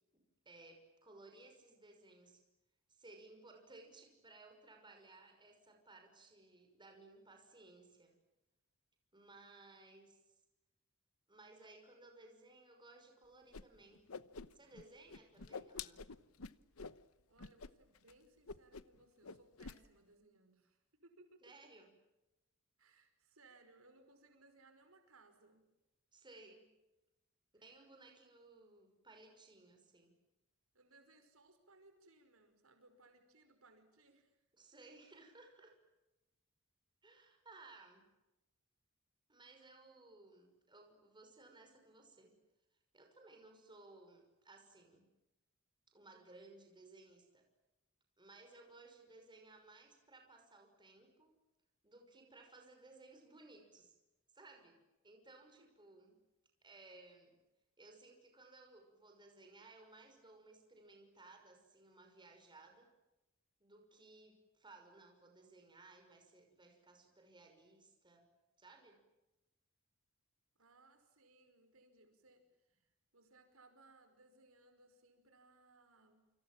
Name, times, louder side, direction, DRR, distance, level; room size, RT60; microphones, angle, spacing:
voice 1, 0.1-2.4 2.9-8.1 9.1-10.3 11.3-14.1 14.5-16.1 21.4-21.9 26.1-26.7 27.5-30.1 34.6-35.8 37.0-38.1 39.3-42.3 42.9-45.1 45.9-47.5 48.2-51.3 51.8-54.0 54.3-54.8 55.0-56.2 56.6-57.3 57.8-62.9 63.6-68.3 68.6-69.0, right 2 dB, 20° right, 4 dB, 5.9 m, -60 dB
Whoosh swoosh swish, 13.5-13.6 13.9-14.8 15.1-17.0 17.4-17.7 18.0-18.1 18.5-19.0 19.2-19.8, left 5 dB, 90° left, 1.0 m, -48 dB
voice 2, 17.3-21.5 22.8-25.7 27.5-27.7 30.7-34.4 55.5-55.8 70.6-76.3, right 2 dB, 80° right, 7 dB, 5.4 m, -66 dB
29.0 x 26.0 x 7.7 m, 1.0 s
head